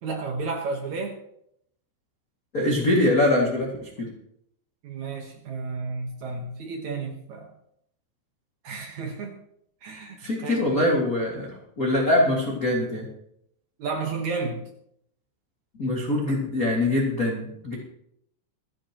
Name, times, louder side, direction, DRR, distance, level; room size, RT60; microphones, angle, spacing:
voice 1, 0.0-1.1 4.8-7.5 8.6-9.4 9.8-10.8 13.8-14.6, right 4 dB, 85° right, 2 dB, 1.6 m, -32 dB
voice 2, 2.5-3.9 10.2-11.5 11.8-13.0 15.8-17.7, left 1 dB, 45° left, -4 dB, 1.1 m, -23 dB
26.5 x 9.7 x 3.0 m, 0.74 s
omnidirectional pair, 5.4 m